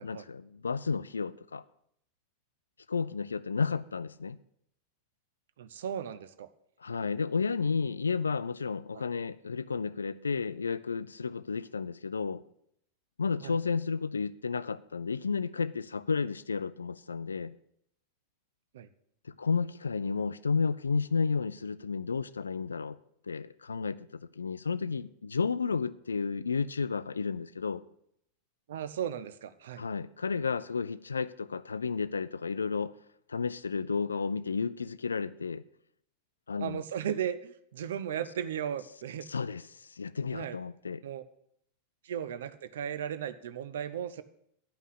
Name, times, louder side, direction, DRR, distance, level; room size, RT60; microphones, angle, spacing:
voice 1, 0.0-1.6 2.9-4.4 6.8-12.4 13.2-17.5 19.2-23.0 23.3-27.8 29.8-32.9 33.3-35.6 36.5-36.8 39.3-41.0, left 5 dB, 75° left, 0.3 m, -32 dB
voice 2, 5.6-6.5 8.9-9.0 13.4-13.6 18.7-18.9 28.7-29.8 36.6-39.3 40.3-40.6 41.0-41.2 42.0-44.2, right 9 dB, 60° right, 0.6 m, -36 dB
10.0 x 5.4 x 8.3 m
figure-of-eight pair, 90°, 0 cm